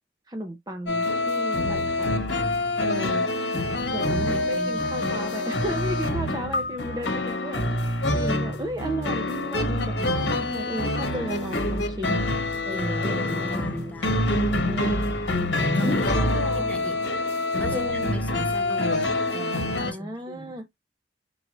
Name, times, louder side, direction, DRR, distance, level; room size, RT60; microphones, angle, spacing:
voice 1, 0.3-2.2 2.8-3.3 3.9-7.6 8.1-12.2 12.6-13.9 14.6-14.9 15.8-16.7 17.7-18.1 19.8-20.6, equal, 20° right, 0.5 m, -34 dB
sound 1, 0.9-19.9, left 1 dB, 60° left, 1.1 m, -26 dB
voice 2, 4.0-5.1 12.7-14.3 15.5-16.1 16.5-17.0 17.6-20.6, left 1 dB, 10° left, 1.0 m, -38 dB
4.6 x 2.5 x 4.0 m
head